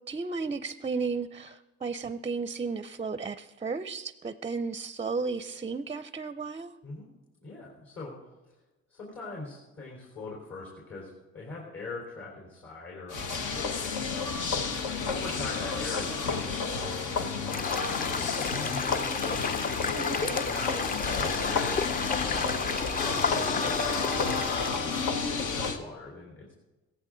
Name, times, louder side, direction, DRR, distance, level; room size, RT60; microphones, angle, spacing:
voice 1, 0.1-6.8 19.9-20.4, right 4 dB, 20° right, 13 dB, 0.5 m, -34 dB
voice 2, 7.4-8.1 8.9-14.0 15.1-18.5 20.4-23.8 24.6-26.5, left 3 dB, 55° left, -3 dB, 4.0 m, -42 dB
sound 1, 13.1-25.8, left 4 dB, 80° left, 1.4 m, -31 dB
sound 2, 17.5-24.7, left 4 dB, 30° left, 0.6 m, -32 dB
16.0 x 14.5 x 3.9 m, 1.1 s
cardioid pair, 90°, 30 cm